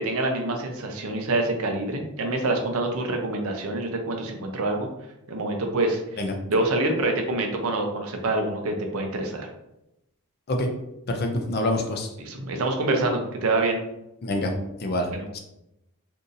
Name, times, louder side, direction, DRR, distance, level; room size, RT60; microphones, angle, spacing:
voice 1, 0.0-4.9 5.3-9.5 12.2-13.8 15.1-15.4, right 2 dB, 75° right, 3 dB, 0.6 m, -26 dB
voice 2, 11.1-12.1 14.2-14.5 14.8-15.1 15.3-15.4, left 1 dB, 45° left, 4 dB, 0.5 m, -26 dB
2.7 x 2.5 x 3.9 m, 0.87 s
head